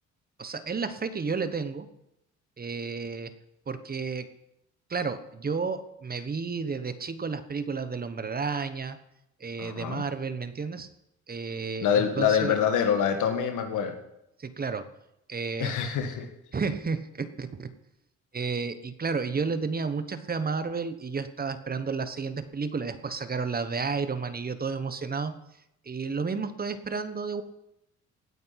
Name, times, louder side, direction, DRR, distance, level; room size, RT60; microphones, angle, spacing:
voice 1, 0.4-1.9 2.6-3.3 3.7-4.3 4.9-9.0 9.4-10.9 11.3-12.5 14.4-14.9 15.3-15.7 16.5-17.7 18.3-25.4 25.9-27.4, right 5 dB, 30° right, 12 dB, 1.1 m, -32 dB
voice 2, 9.6-10.0 11.8-13.9 15.6-16.3, left 8 dB, 80° left, 6 dB, 1.9 m, -25 dB
16.5 x 9.4 x 5.8 m, 0.83 s
cardioid pair, 90°, 30 cm